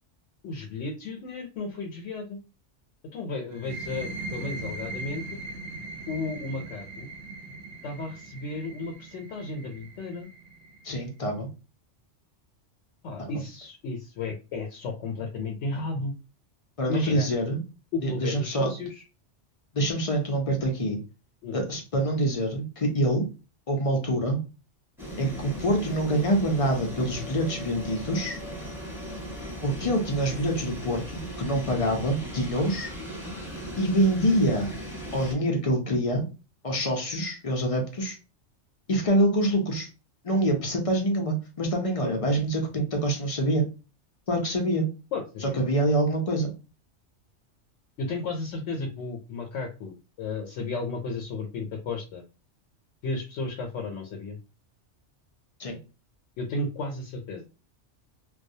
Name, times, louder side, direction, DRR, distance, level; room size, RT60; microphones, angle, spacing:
voice 1, 0.4-2.4 3.1-5.3 6.1-7.1 7.8-10.3 13.0-16.2 16.9-17.3 17.9-19.0 21.4-21.6 45.1-45.6 48.0-52.2 53.0-54.4 56.4-57.5, left 3 dB, 80° left, 1 dB, 0.9 m, -33 dB
sound 1, 3.5-11.0, right 2 dB, 60° right, 0.8 m, -40 dB
voice 2, 10.8-11.5 13.3-13.4 16.8-17.6 18.0-18.7 19.7-21.0 21.5-23.2 23.7-24.4 25.2-28.4 29.6-32.9 33.8-34.7 35.1-36.2 36.6-38.2 38.9-39.9 40.2-43.6 44.3-44.9 45.4-46.5 55.6-55.8, right 1 dB, 50° left, 2 dB, 0.4 m, -25 dB
sound 2, 25.0-35.3, equal, ahead, 0.8 m, -38 dB
2.3 x 2.1 x 2.6 m, 0.31 s
omnidirectional pair, 1.2 m